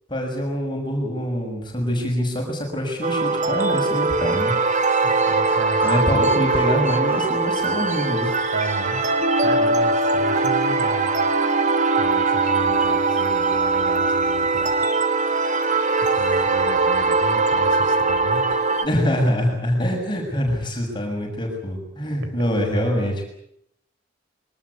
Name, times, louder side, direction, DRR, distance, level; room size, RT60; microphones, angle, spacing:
voice 1, 0.1-4.5 5.8-8.3 18.8-23.2, equal, 25° left, 1 dB, 6.6 m, -24 dB
sound 1, 3.0-18.9, right 3 dB, 40° right, 2.1 m, -21 dB
sound 2, 4.7-9.8, right 1 dB, 15° right, 2.8 m, -40 dB
voice 2, 5.0-5.9 8.5-9.0 9.4-11.2 12.0-14.8 16.0-18.7, right 2 dB, 80° right, 9 dB, 4.2 m, -33 dB
23.5 x 19.5 x 9.6 m, 0.76 s
head